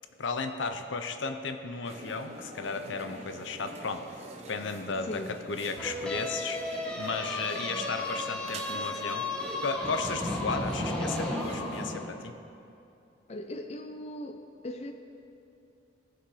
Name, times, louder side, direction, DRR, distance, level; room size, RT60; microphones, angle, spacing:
voice 1, 0.2-4.2 4.5-5.2 5.5-6.6 7.0-9.3 9.6-12.3, left 4 dB, 75° left, 7 dB, 0.7 m, -34 dB
sound 1, 1.9-11.9, right 2 dB, 35° right, 0.8 m, -45 dB
voice 2, 5.0-5.4 13.3-14.9, left 1 dB, 35° left, 5 dB, 0.5 m, -39 dB
sound 2, 5.8-12.0, left 1 dB, 5° left, 1.2 m, -34 dB
17.5 x 6.1 x 4.9 m, 2.7 s
head